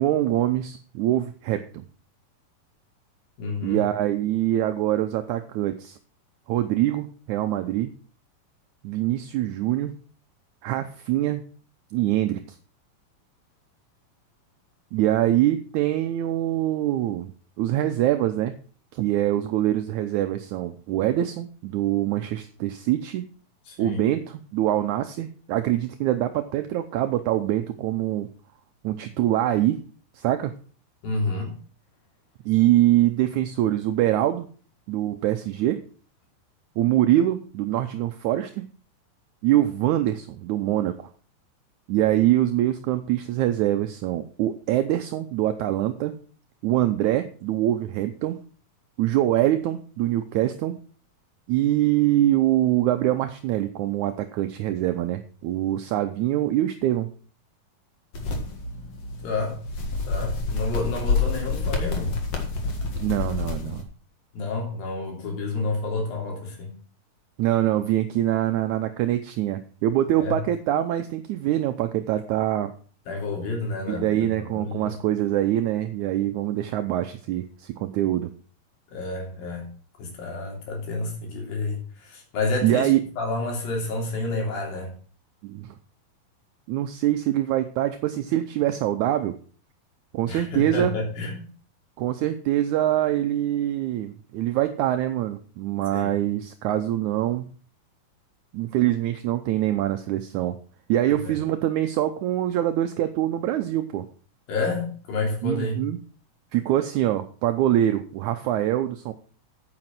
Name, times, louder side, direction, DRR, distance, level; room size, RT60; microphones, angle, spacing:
voice 1, 0.0-1.8 3.6-6.0 6.5-7.9 8.8-9.9 10.6-11.4 11.9-12.4 14.9-17.3 17.6-18.6 18.9-23.2 23.8-28.3 28.8-29.8 30.2-30.6 32.5-34.5 34.9-35.8 36.8-38.7 39.4-41.1 41.9-46.2 46.6-48.4 49.0-50.8 51.5-57.1 63.0-63.9 67.4-72.7 73.9-78.3 82.6-83.0 85.4-85.7 86.7-89.4 90.1-90.9 92.0-97.5 98.5-100.6 100.9-104.1 105.4-106.0 106.5-109.1, right 13 dB, 75° right, 8 dB, 1.8 m, -24 dB
voice 2, 3.4-3.8 23.7-24.0 31.0-31.5 59.2-59.6 60.1-62.1 64.3-66.7 70.2-70.4 73.1-74.1 74.5-75.0 78.9-79.7 80.0-82.9 83.2-84.9 90.3-91.4 95.9-96.1 101.1-101.3 104.5-105.8, left 3 dB, 85° left, 0 dB, 5.0 m, -29 dB
sound 1, 58.1-63.8, left 4 dB, 50° left, 2.6 m, -28 dB
9.1 x 8.7 x 6.1 m, 0.41 s
omnidirectional pair, 4.1 m